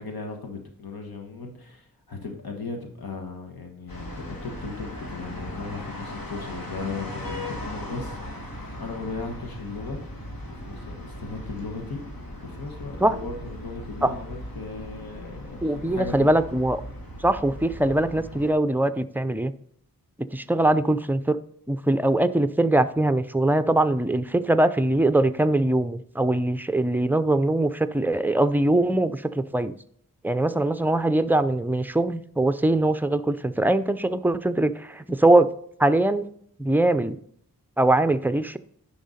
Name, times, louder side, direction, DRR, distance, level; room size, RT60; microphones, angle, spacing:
voice 1, 0.0-10.0 10.5-12.0 12.4-16.3 30.5-30.6, left 4 dB, 90° left, 4 dB, 1.4 m, -37 dB
sound 1, 3.9-18.5, left 1 dB, 70° left, 2.2 m, -38 dB
voice 2, 15.6-16.8 17.2-19.5 20.3-21.4 21.7-29.7 30.2-35.5 35.8-36.3 36.6-37.2 37.8-38.6, right 1 dB, 5° right, 12 dB, 0.4 m, -22 dB
10.0 x 5.8 x 4.1 m, 0.66 s
wide cardioid pair, 105°, 36 cm